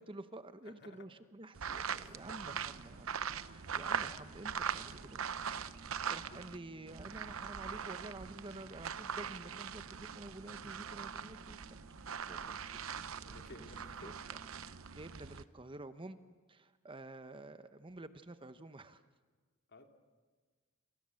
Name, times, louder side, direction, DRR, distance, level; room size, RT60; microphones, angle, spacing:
voice 1, 0.0-5.3 5.8-11.6 12.3-12.7 13.0-13.1 13.6-13.7 14.0-14.1 14.6-16.2 16.5-19.0, right 2 dB, 25° right, 11 dB, 0.9 m, -50 dB
voice 2, 0.6-1.1 2.0-2.3 4.7-5.1 6.0-6.5 13.2-14.1 14.5-14.7 19.7-19.9, left 2 dB, 55° left, 5 dB, 2.5 m, -57 dB
sound 1, 1.5-6.6 6.9-15.4, right 7 dB, 80° right, 0.8 m, -42 dB
sound 2, 3.4-14.9, right 2 dB, 60° right, 4.8 m, -60 dB
29.0 x 27.0 x 7.7 m, 1.4 s
head